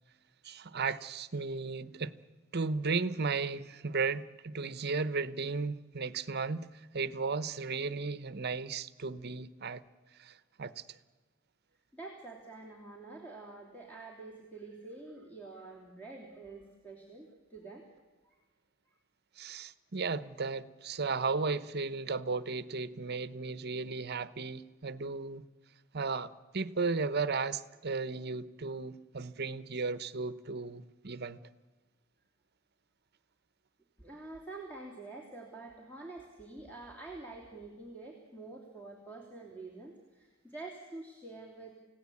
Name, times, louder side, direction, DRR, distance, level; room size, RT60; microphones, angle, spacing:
voice 1, 0.4-2.1 2.5-9.8 10.2-11.0 19.4-25.5 25.9-31.4, right 4 dB, 50° right, 15 dB, 1.0 m, -35 dB
voice 2, 11.9-17.8 18.2-18.4 18.9-19.0 34.0-41.8, right 3 dB, 10° left, 0 dB, 3.1 m, -47 dB
29.5 x 17.0 x 8.5 m, 1.3 s
head